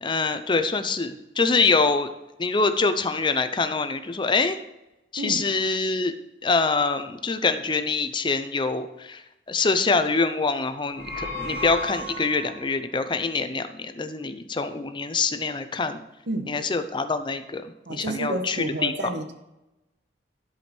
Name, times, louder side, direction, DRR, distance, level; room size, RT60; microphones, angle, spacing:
voice 1, 0.0-2.1 2.4-4.6 5.1-6.1 6.4-9.2 9.5-16.0 16.5-19.1, left 4 dB, 25° left, 9 dB, 0.6 m, -25 dB
sound 1, 10.8-12.7, left 2 dB, 50° right, 3.5 m, -33 dB
voice 2, 17.9-19.3, right 2 dB, 75° right, 6 dB, 1.1 m, -30 dB
11.0 x 5.0 x 4.4 m, 0.95 s
head